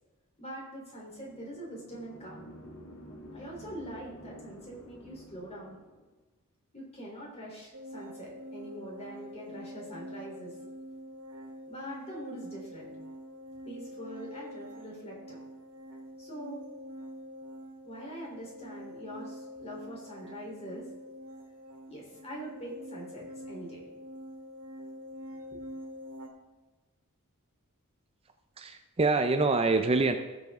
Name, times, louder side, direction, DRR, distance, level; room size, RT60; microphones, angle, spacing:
voice 1, 0.4-2.4 3.3-5.8 6.7-10.5 11.7-12.9 13.7-15.4 16.2-16.6 17.8-20.9 21.9-23.9, equal, 30° left, -3 dB, 3.6 m, -43 dB
sound 1, 1.1-6.1, equal, 85° left, 2.6 m, -50 dB
sound 2, 7.7-26.3, equal, 80° right, 2.1 m, -45 dB
voice 2, 28.6-30.2, right 3 dB, 25° right, 7 dB, 0.5 m, -25 dB
16.5 x 7.0 x 3.6 m, 1.2 s
head